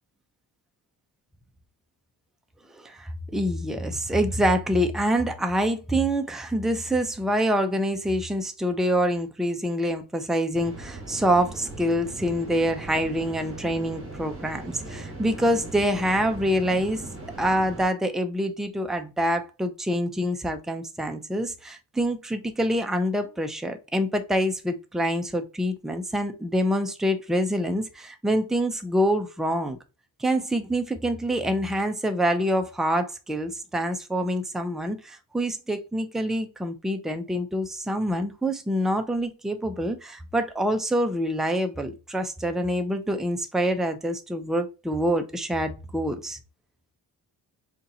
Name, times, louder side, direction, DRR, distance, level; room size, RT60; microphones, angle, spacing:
voice 1, 2.7-29.8 30.2-46.4, equal, ahead, 0.5 m, -26 dB
sound 1, 10.5-17.9, right 2 dB, 30° right, 2.2 m, -39 dB
5.1 x 2.5 x 2.8 m
cardioid pair, 85°, 41 cm